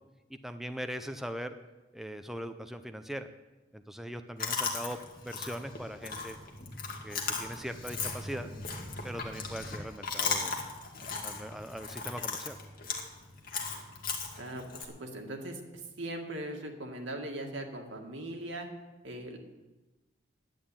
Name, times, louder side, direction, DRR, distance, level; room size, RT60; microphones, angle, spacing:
voice 1, 0.3-1.5 1.9-3.3 3.7-5.0 5.2-6.4 7.0-8.5 9.0-10.6 11.2-12.6, equal, ahead, 7 dB, 0.5 m, -40 dB
Chewing mastication, 4.4-14.8, left 4 dB, 50° left, 1.9 m, -37 dB
voice 2, 14.4-18.7 19.0-19.4, right 1 dB, 85° right, 2 dB, 2.1 m, -40 dB
10.5 x 9.4 x 8.7 m, 1.1 s
head